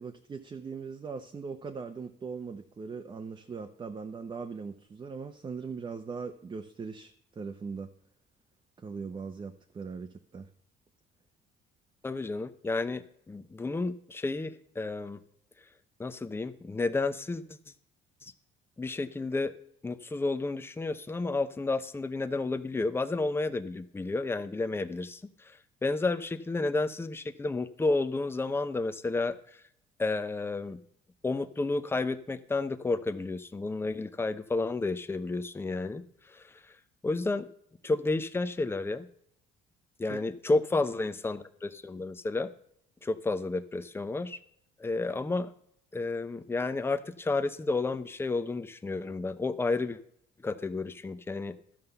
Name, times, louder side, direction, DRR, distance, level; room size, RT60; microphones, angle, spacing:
voice 1, 0.0-7.9 8.8-10.5 40.1-40.2, right 5 dB, 25° right, 6 dB, 0.8 m, -40 dB
voice 2, 12.0-15.2 16.0-17.6 18.2-18.3 18.8-19.5 19.8-29.4 30.0-30.8 31.2-36.5 37.0-37.5 37.8-39.1 40.0-42.5 43.0-44.4 44.8-45.5 45.9-50.0 50.4-51.6, left 3 dB, 15° left, 11 dB, 0.7 m, -31 dB
13.0 x 5.6 x 6.8 m, 0.68 s
cardioid pair, 110°, 17 cm